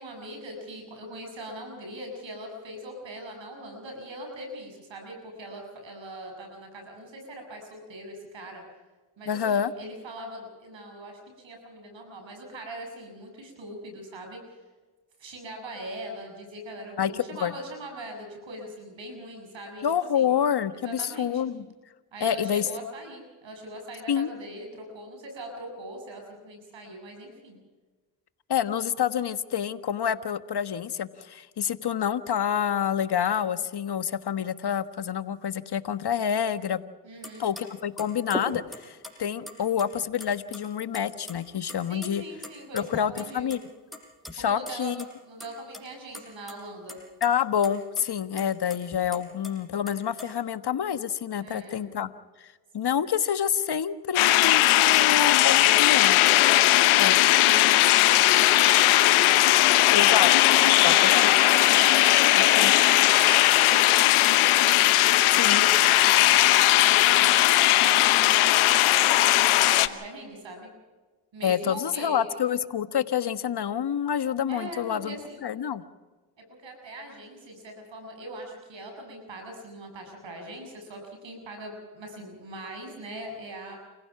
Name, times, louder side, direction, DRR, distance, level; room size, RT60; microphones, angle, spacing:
voice 1, 0.0-8.6 9.2-14.4 15.2-19.8 20.1-20.3 20.7-21.4 22.1-27.6 37.0-37.5 41.9-43.6 44.4-44.9 45.2-47.0 51.3-51.8 54.8-56.0 56.3-60.2 60.5-64.4 65.3-70.7 71.3-72.3 74.5-75.5 76.4-83.8, right 1 dB, 65° right, 3 dB, 7.5 m, -41 dB
voice 2, 9.3-9.7 17.0-17.5 19.8-21.6 22.2-22.7 24.1-24.3 28.5-36.8 37.4-42.2 42.7-43.6 44.3-44.9 47.2-52.1 52.4-52.5 52.7-56.2 57.0-57.2 59.9-60.3 60.8-61.3 62.4-62.8 65.4-65.7 71.4-75.2 75.4-75.8, left 8 dB, 55° left, 12 dB, 1.4 m, -27 dB
sound 1, 37.2-37.3 37.6-37.7 38.0-39.1 39.5-40.3 40.5-40.6 40.9-41.4 41.6-42.1 42.4-43.6 43.9-44.3 44.7-44.8 45.0-45.1 45.4-45.8 46.1-46.6 46.9-47.3 47.6-47.7 48.0-48.1 48.4-49.5 49.9-50.3, equal, ahead, 6.3 m, -38 dB
sound 2, 54.2-69.9, left 16 dB, 90° left, 1.0 m, -19 dB
29.5 x 16.5 x 6.0 m, 1.3 s
supercardioid pair, 50°, 48 cm